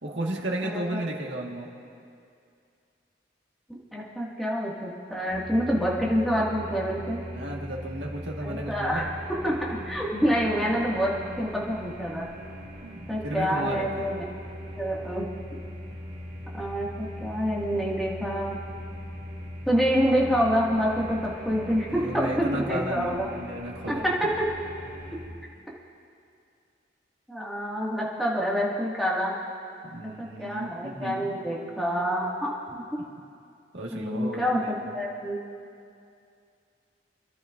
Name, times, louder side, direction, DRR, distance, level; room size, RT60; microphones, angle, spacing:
voice 1, 0.0-1.7 7.3-9.0 12.8-14.1 21.5-24.1 29.9-31.4 33.7-34.7, right 1 dB, 80° right, -1 dB, 1.7 m, -34 dB
voice 2, 0.6-1.0 3.7-7.2 8.4-9.0 9.4-12.3 13.1-14.2 14.8-15.3 16.5-18.6 19.7-23.3 23.9-24.5 27.3-29.4 30.2-32.8 33.9-35.4, equal, ahead, -6 dB, 2.0 m, -27 dB
sound 1, 5.3-25.3, left 1 dB, 40° right, 3.4 m, -40 dB
29.0 x 12.0 x 2.6 m, 2.4 s
head